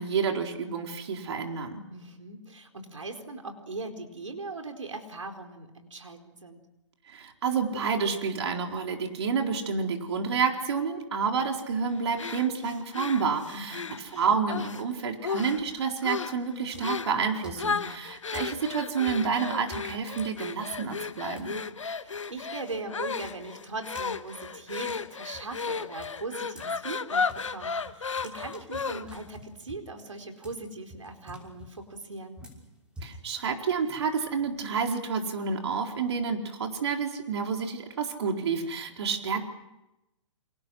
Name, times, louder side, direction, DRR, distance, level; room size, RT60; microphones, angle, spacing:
voice 1, 0.0-1.8 7.1-21.6 33.0-39.5, right 5 dB, 60° right, 3 dB, 4.2 m, -29 dB
voice 2, 1.9-6.7 13.5-13.9 21.9-32.4, right 3 dB, 90° right, 5 dB, 4.2 m, -40 dB
sound 1, 12.2-14.8 15.2-15.7 16.0-16.4 16.8-17.2 17.6-29.3, left 5 dB, 85° left, 1.6 m, -34 dB
sound 2, 15.9-16.2 16.7-21.5 21.9-26.7 27.1-34.5, left 1 dB, 5° right, 5.9 m, -50 dB
29.0 x 27.5 x 6.4 m, 0.93 s
hypercardioid pair, 135°, 16 cm